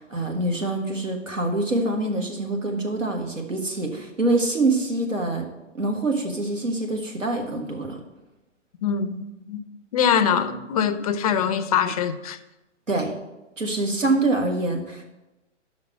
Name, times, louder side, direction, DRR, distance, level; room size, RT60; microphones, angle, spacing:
voice 1, 0.0-5.4 5.7-8.0 12.9-13.1 13.6-15.0, right 2 dB, 85° right, 1.6 m, -25 dB
voice 2, 8.8-9.6 9.9-12.4 13.9-14.0, left 7 dB, 30° left, 0.4 m, -23 dB
5.9 x 5.4 x 6.6 m
figure-of-eight pair, 120°, 37 cm